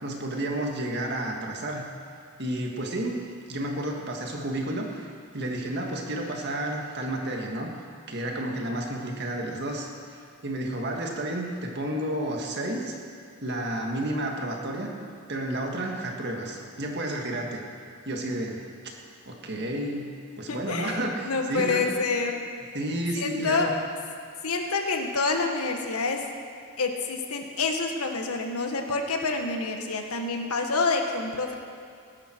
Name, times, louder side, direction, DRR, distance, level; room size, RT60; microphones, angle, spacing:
voice 1, 0.0-1.9 2.4-7.7 8.1-12.9 13.4-14.9 15.3-17.6 18.0-18.6 19.2-20.1 20.4-21.8 22.7-23.7, right 1 dB, 50° right, 1 dB, 1.8 m, -31 dB
voice 2, 20.5-22.4 23.2-23.7 24.4-26.2 26.8-31.5, left 4 dB, 80° left, 3 dB, 1.4 m, -27 dB
19.5 x 11.0 x 4.5 m, 2.2 s
head